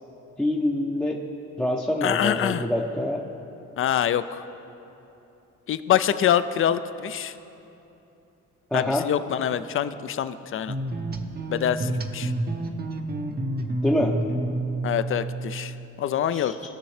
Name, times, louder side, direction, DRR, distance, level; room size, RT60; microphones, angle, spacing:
voice 1, 0.4-1.2 1.6-3.2 8.7-9.0 13.8-14.1 16.3-16.7, left 1 dB, 5° left, -1 dB, 0.6 m, -25 dB
voice 2, 2.0-2.7 3.8-4.4 5.7-7.3 8.7-10.8 11.5-12.3 14.8-16.7, left 10 dB, 45° left, 13 dB, 0.4 m, -25 dB
sound 1, 10.7-15.9, right 2 dB, 30° right, 0.7 m, -29 dB
17.0 x 6.2 x 3.3 m, 2.9 s
cardioid pair, 90°, 30 cm